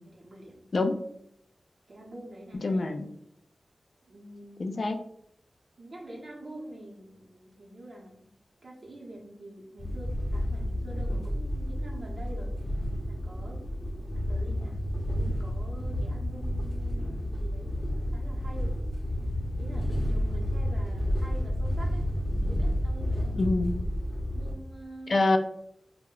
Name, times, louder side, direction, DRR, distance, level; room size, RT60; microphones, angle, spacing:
voice 1, 0.1-0.6 1.9-2.8 4.0-4.7 5.8-8.1 8.6-12.5 13.1-13.6 14.1-14.8 15.1-19.0 19.6-22.1 22.4-23.4 24.3-25.2, right 1 dB, 55° right, -4 dB, 0.7 m, -46 dB
voice 2, 2.5-3.1 4.6-5.0 23.3-23.7 25.1-25.4, left 2 dB, 65° left, 7 dB, 0.3 m, -26 dB
sound 1, 9.8-24.5, equal, 40° left, 0.7 m, -30 dB
2.1 x 2.1 x 3.6 m, 0.73 s
cardioid pair, 50°, 0 cm